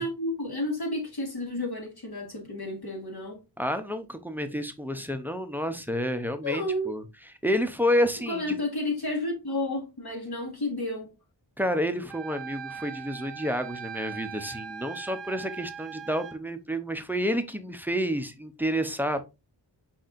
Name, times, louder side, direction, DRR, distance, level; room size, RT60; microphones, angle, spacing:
voice 1, 0.0-3.4 6.4-6.9 8.3-11.1, left 1 dB, 60° left, 1.5 m, -31 dB
voice 2, 3.6-7.0 7.4-8.6 11.6-19.3, equal, 5° right, 0.6 m, -29 dB
Wind instrument woodwind instrument, 12.1-16.4, right 7 dB, 75° right, 0.6 m, -40 dB
5.0 x 4.1 x 2.5 m
wide cardioid pair, 85°, 44 cm